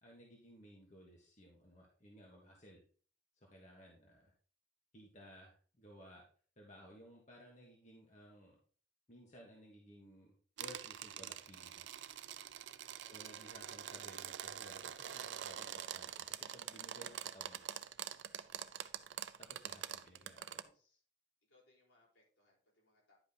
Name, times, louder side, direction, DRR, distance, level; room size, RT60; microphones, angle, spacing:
voice 1, 0.0-2.8 3.3-4.3 4.9-6.2 6.6-8.6 9.1-11.8 13.1-17.7 19.4-20.7, equal, 35° left, -1 dB, 1.5 m, -58 dB
sound 1, 10.6-20.6, right 9 dB, 65° right, 0.5 m, -45 dB
voice 2, 12.6-12.9 19.4-19.6 20.5-21.0 21.5-23.2, left 2 dB, 75° left, -3 dB, 4.5 m, -73 dB
10.5 x 5.2 x 4.0 m, 0.42 s
head